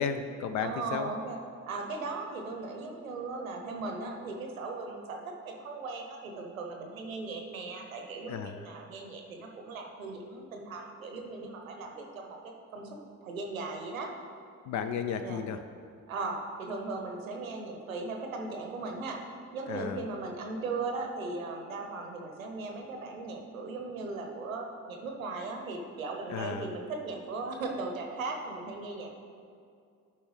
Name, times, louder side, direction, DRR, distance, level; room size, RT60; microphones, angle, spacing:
voice 1, 0.0-1.1 8.3-8.5 14.7-15.6 19.7-20.0 26.3-26.7, left 6 dB, 50° left, 8 dB, 0.5 m, -33 dB
voice 2, 0.6-1.4 1.7-12.9 13.2-14.1 15.2-15.4 16.1-19.2 19.5-29.2, right 3 dB, 85° right, 2 dB, 0.7 m, -38 dB
11.5 x 4.4 x 3.2 m, 2.4 s
figure-of-eight pair, 45°, 40 cm